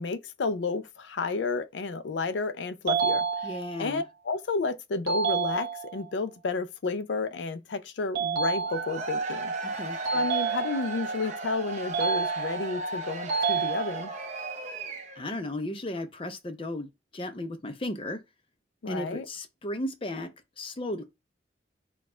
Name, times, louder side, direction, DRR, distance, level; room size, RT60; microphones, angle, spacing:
voice 1, 0.0-3.5 3.8-9.5 10.1-14.1 18.8-19.3, left 3 dB, 85° left, 0.5 m, -31 dB
sound 1, 2.9-3.9 5.1-6.1 8.1-9.2 10.0-11.1 11.9-12.8 13.3-14.3, right 5 dB, 55° right, 1.4 m, -29 dB
voice 2, 3.4-4.0 9.6-10.0 15.2-18.2 18.9-21.0, left 1 dB, 30° left, 0.6 m, -35 dB
Cheering / Crowd, 8.6-15.3, right 3 dB, 40° right, 0.7 m, -35 dB
4.2 x 2.3 x 4.3 m
head